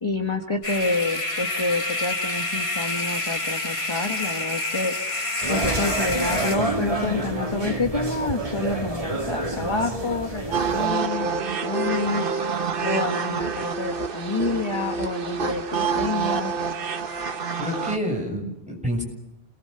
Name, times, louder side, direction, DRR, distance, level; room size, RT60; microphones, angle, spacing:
voice 1, 0.0-4.9 5.5-11.3 11.6-12.3 12.8-15.7 15.9-16.5, left 3 dB, 25° left, 5 dB, 1.4 m, -28 dB
sound 1, 0.6-6.6, left 2 dB, 90° left, 3.3 m, -28 dB
sound 2, 5.4-10.9, right 2 dB, 35° right, 2.4 m, -28 dB
sound 3, 10.5-18.0, right 5 dB, 60° right, 1.2 m, -27 dB
voice 2, 17.6-19.0, equal, 5° right, 0 dB, 7.3 m, -28 dB
29.0 x 20.5 x 6.8 m, 0.88 s
omnidirectional pair, 1.1 m